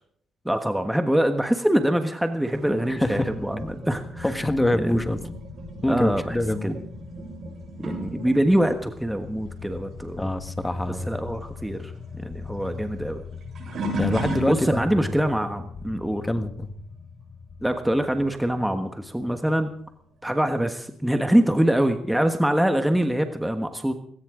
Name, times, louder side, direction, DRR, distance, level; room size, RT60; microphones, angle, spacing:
voice 1, 0.4-4.4 4.7-5.0 5.9-6.4 6.6-6.7 7.8-10.3 11.1-13.2 14.5-16.2 17.6-19.7 20.2-23.9, right 1 dB, 5° right, 7 dB, 1.4 m, -24 dB
sound 1, 2.4-10.4 10.7-15.0 15.6-16.0 18.2-18.3 19.2-19.3, right 1 dB, 55° right, 7.4 m, -37 dB
sound 2, 2.9-20.0, left 5 dB, 60° left, 4.5 m, -41 dB
voice 2, 2.9-3.3 4.2-5.2 5.8-6.8 10.2-11.1 14.0-15.1 16.2-16.7, left 1 dB, 10° left, 10 dB, 1.6 m, -25 dB
19.0 x 17.5 x 3.8 m, 0.63 s
cardioid pair, 90°, 0 cm